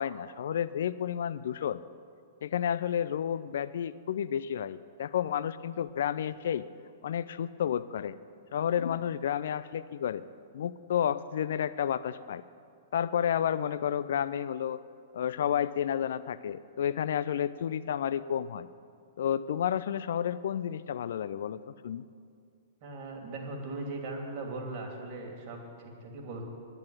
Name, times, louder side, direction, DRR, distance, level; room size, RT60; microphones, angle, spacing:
voice 1, 0.0-1.8 2.4-6.6 7.0-8.2 8.5-10.2 10.5-12.4 12.9-14.8 15.1-18.7 19.2-22.0, left 9 dB, 60° left, 15 dB, 0.4 m, -31 dB
voice 2, 22.8-26.4, right 2 dB, 45° right, 1 dB, 3.0 m, -39 dB
10.5 x 9.8 x 9.9 m, 2.3 s
figure-of-eight pair, 110°, 0 cm